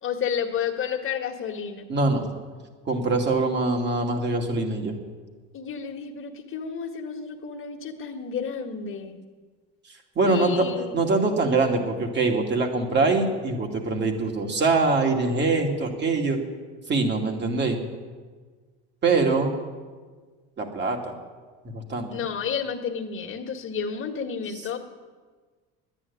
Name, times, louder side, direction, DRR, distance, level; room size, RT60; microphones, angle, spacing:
voice 1, 0.0-1.9 5.5-9.2 10.2-10.9 22.1-24.8, left 7 dB, 45° left, 3 dB, 1.8 m, -31 dB
voice 2, 1.9-2.3 2.9-5.0 10.2-16.4 16.9-17.8 19.0-19.5 20.6-21.1 21.6-22.2, right 3 dB, 35° right, 2 dB, 2.5 m, -23 dB
11.0 x 9.8 x 9.8 m, 1.4 s
supercardioid pair, 100°, 30 cm